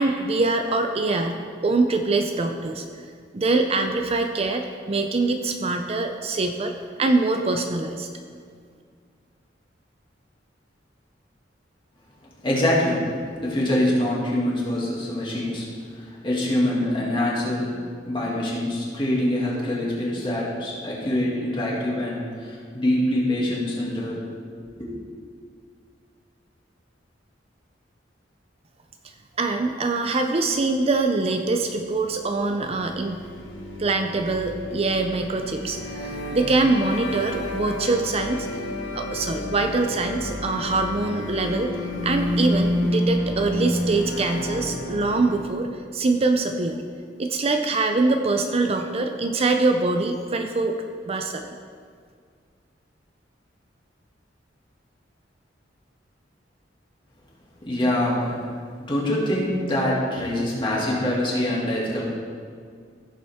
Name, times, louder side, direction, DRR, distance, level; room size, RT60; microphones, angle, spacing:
voice 1, 0.0-2.8 3.3-6.7 7.0-8.1 29.4-33.2 33.8-38.5 38.9-41.7 42.0-46.8 47.2-50.8 51.1-51.5, right 3 dB, 35° right, 5 dB, 0.5 m, -24 dB
voice 2, 12.4-13.0 13.4-15.7 15.9-17.7 18.0-24.2 24.8-24.9 57.6-58.4 58.8-62.1, left 1 dB, 30° left, -5 dB, 2.5 m, -24 dB
sound 1, 32.6-45.6, left 1 dB, 75° left, 1.4 m, -30 dB
15.0 x 7.2 x 3.6 m, 2.1 s
head